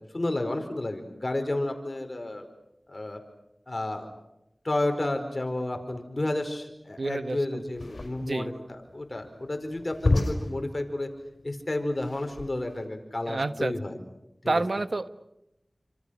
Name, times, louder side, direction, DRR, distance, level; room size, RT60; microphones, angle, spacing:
voice 1, 0.1-2.5 2.9-3.2 3.7-4.1 4.6-11.1 11.4-14.0 14.4-14.6, left 1 dB, 45° left, 6 dB, 4.7 m, -31 dB
voice 2, 7.0-7.7 8.2-8.5 13.3-13.7 14.5-15.1, right 2 dB, 70° right, 11 dB, 1.3 m, -29 dB
sound 1, 7.7-12.8, left 2 dB, 70° left, 5.2 m, -31 dB
28.5 x 26.0 x 6.5 m, 0.88 s
wide cardioid pair, 50°, 0 cm